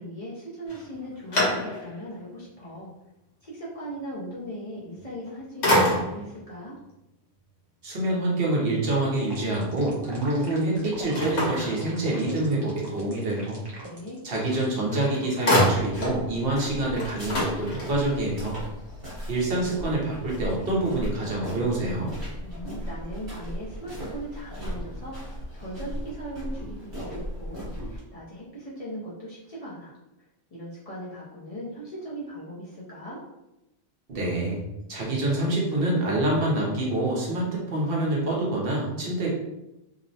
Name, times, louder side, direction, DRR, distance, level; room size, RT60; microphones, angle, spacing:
voice 1, 0.0-2.9 3.4-6.8 13.7-14.2 22.4-30.0 30.5-33.2, equal, 45° left, -7 dB, 0.5 m, -39 dB
sound 1, 0.7-2.1 2.6-2.7 5.0-5.3 5.6-6.4 11.1-12.4 14.5-14.6 14.9-16.2 16.6-16.7 16.9-18.2, equal, 90° left, 1.1 m, -26 dB
voice 2, 7.8-13.6 14.2-18.6 19.3-22.1 34.1-34.6 34.9-39.3, right 2 dB, 65° right, -3 dB, 0.9 m, -26 dB
sound 2, 9.3-14.7, right 1 dB, 30° right, 0.6 m, -42 dB
sound 3, 15.7-28.0, equal, 50° right, 1.3 m, -37 dB
2.8 x 2.0 x 2.7 m, 0.94 s
omnidirectional pair, 1.1 m